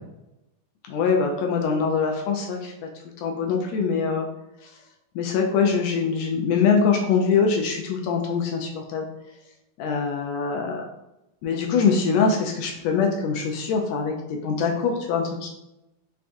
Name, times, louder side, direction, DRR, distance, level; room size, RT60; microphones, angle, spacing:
voice 1, 0.9-2.7 3.2-4.3 4.6-4.7 5.1-9.1 9.8-10.8 11.4-14.2 14.4-15.5, left 5 dB, 85° left, 2 dB, 1.5 m, -23 dB
5.5 x 3.5 x 2.5 m, 0.90 s
omnidirectional pair, 3.7 m